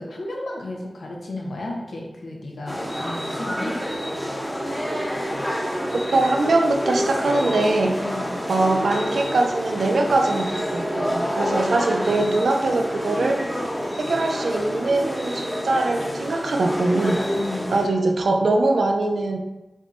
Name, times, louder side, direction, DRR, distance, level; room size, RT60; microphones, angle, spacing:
voice 1, 0.0-3.8 8.0-8.5 11.6-12.3 17.4-17.9, left 2 dB, 90° left, -1 dB, 0.8 m, -34 dB
sound 1, 2.7-17.9, equal, 10° left, 0.8 m, -28 dB
voice 2, 6.1-8.0 8.5-13.4 14.0-17.2 17.7-19.4, right 2 dB, 85° right, 3 dB, 0.4 m, -22 dB
4.2 x 3.5 x 2.5 m, 1.0 s
wide cardioid pair, 80°, 0 cm